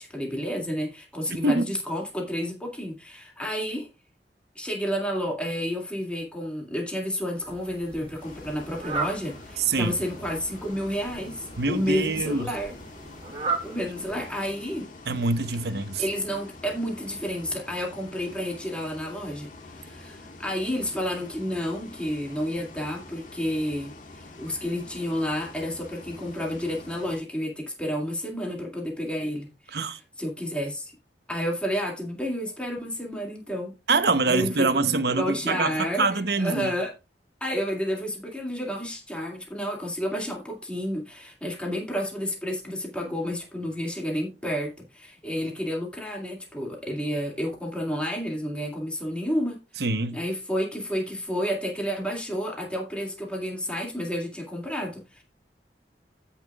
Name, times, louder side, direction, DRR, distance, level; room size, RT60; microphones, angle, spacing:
voice 1, 0.0-3.9 4.6-12.7 13.6-14.9 16.0-29.8 30.2-30.9 31.3-33.7 34.3-34.9 35.2-36.9 37.4-49.6 50.1-55.2, equal, 5° left, 2.2 m, -30 dB
voice 2, 1.3-1.7 9.6-9.9 11.6-12.5 15.1-16.0 29.7-30.0 33.9-36.7 49.8-50.2, right 3 dB, 65° right, 0.9 m, -25 dB
Fowl, 7.4-14.7, right 3 dB, 35° right, 2.1 m, -37 dB
Bus, 8.2-27.2, left 2 dB, 50° left, 1.6 m, -46 dB
15.5 x 5.8 x 2.4 m
head